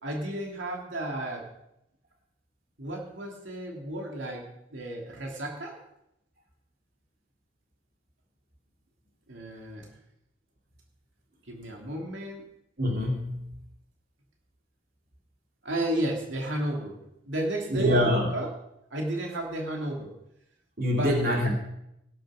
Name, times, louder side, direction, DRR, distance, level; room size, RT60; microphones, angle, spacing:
voice 1, 0.0-1.5 2.8-5.8 9.3-9.9 11.5-12.4 15.6-17.0 17.2-18.5 18.9-20.1 20.9-21.2, right 1 dB, 75° right, 0 dB, 2.7 m, -32 dB
voice 2, 12.8-13.5 17.7-18.3 20.8-21.5, left 1 dB, 50° right, 0 dB, 2.9 m, -25 dB
17.5 x 7.6 x 6.3 m, 0.82 s
head